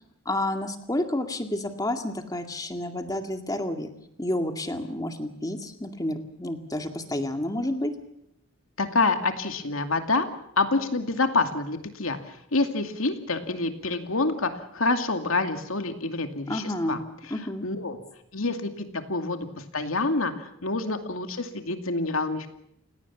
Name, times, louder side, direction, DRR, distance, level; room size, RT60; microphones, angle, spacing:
voice 1, 0.3-3.9 4.2-7.9 16.5-17.0 17.3-17.7, left 1 dB, 15° left, 6 dB, 2.1 m, -30 dB
voice 2, 8.8-10.3 10.6-17.0 17.6-18.0 18.3-22.5, left 3 dB, 75° left, 6 dB, 2.5 m, -27 dB
29.5 x 17.0 x 7.2 m, 0.75 s
head